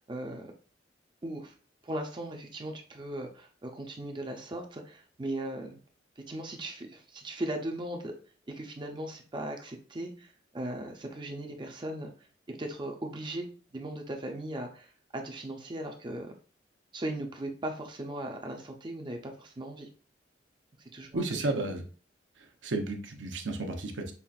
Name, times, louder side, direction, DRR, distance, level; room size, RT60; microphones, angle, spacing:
voice 1, 0.1-0.5 1.2-1.5 1.8-5.8 6.2-8.1 8.5-12.1 12.5-13.5 13.7-16.3 16.9-19.9 20.8-21.6, right 1 dB, 25° right, 3 dB, 0.5 m, -38 dB
voice 2, 21.1-21.8 22.6-24.1, right 2 dB, 90° right, 4 dB, 0.7 m, -32 dB
5.5 x 2.4 x 2.4 m, 0.39 s
head